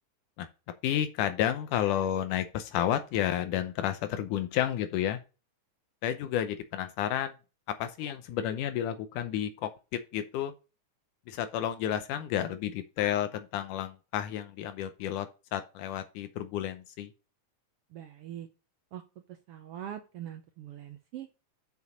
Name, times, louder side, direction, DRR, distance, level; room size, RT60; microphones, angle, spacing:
voice 1, 0.8-5.2 6.0-7.4 7.7-10.5 11.3-17.1, left 11 dB, 85° left, 2.3 m, -31 dB
voice 2, 17.9-18.5 18.9-19.0 19.5-21.3, right 10 dB, 80° right, 1.3 m, -42 dB
7.0 x 6.4 x 5.0 m
omnidirectional pair, 3.6 m